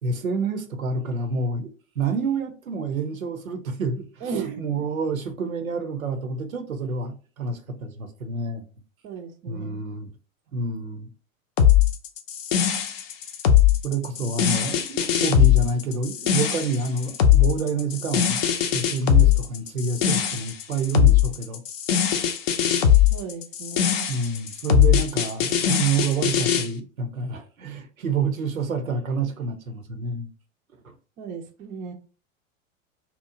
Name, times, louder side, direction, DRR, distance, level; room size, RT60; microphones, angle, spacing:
voice 1, 0.0-8.6 9.5-10.1 10.5-11.1 13.8-18.4 18.7-21.6 24.1-30.3 30.8-30.9, right 4 dB, 85° right, 0.6 m, -28 dB
voice 2, 4.2-4.7 9.0-9.8 23.1-24.1 31.2-31.9, right 5 dB, 20° right, 0.4 m, -35 dB
sound 1, 11.6-26.7, left 10 dB, 45° left, 0.5 m, -20 dB
2.9 x 2.0 x 3.7 m
figure-of-eight pair, 90°, 40 cm